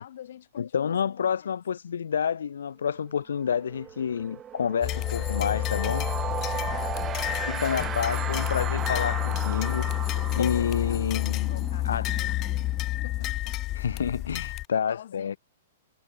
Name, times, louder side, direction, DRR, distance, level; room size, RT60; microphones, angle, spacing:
voice 1, 0.0-1.5 6.2-8.7 10.1-12.6 13.0-13.6 13.9-14.0 14.9-15.4, left 11 dB, 65° left, 4.4 m, -48 dB
voice 2, 0.6-6.0 7.5-12.1 13.7-15.4, left 7 dB, 90° left, 1.7 m, -29 dB
sound 1, 2.9-3.1 3.4-14.0, right 9 dB, 20° right, 1.5 m, -36 dB
sound 2, 4.8-14.7, left 17 dB, 30° left, 0.4 m, -29 dB
hypercardioid pair, 145°, 0 cm